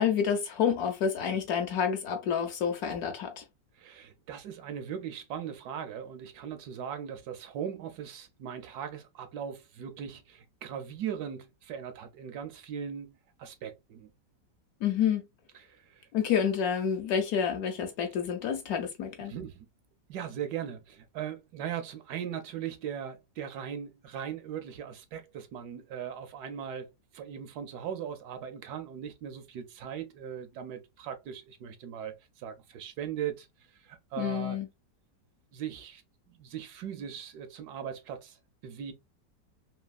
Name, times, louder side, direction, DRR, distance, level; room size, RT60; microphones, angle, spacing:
voice 1, 0.0-3.4 14.8-15.2 16.1-19.3 34.2-34.7, left 7 dB, 70° left, 1.0 m, -29 dB
voice 2, 3.8-13.1 13.4-14.1 15.5-16.1 19.3-19.7 20.1-33.5 33.8-34.6 35.5-36.0 36.3-38.4 38.6-38.9, right 8 dB, 75° right, 1.1 m, -39 dB
3.2 x 2.7 x 2.3 m
omnidirectional pair, 1.9 m